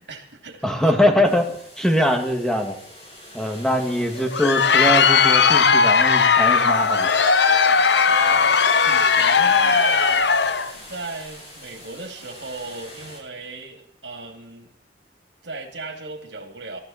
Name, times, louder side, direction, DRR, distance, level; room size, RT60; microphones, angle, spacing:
voice 1, 0.0-0.9 8.1-10.3 10.9-14.7 15.4-16.8, right 3 dB, 90° right, 5 dB, 2.9 m, -35 dB
voice 2, 0.6-1.5 1.8-2.8 3.3-7.1, left 1 dB, 5° left, 4 dB, 2.1 m, -22 dB
sound 1, 1.2-13.2, equal, 35° left, 7.7 m, -43 dB
Crowd, 4.1-10.7, left 5 dB, 75° left, 0.9 m, -17 dB
22.0 x 13.0 x 4.4 m, 0.67 s
head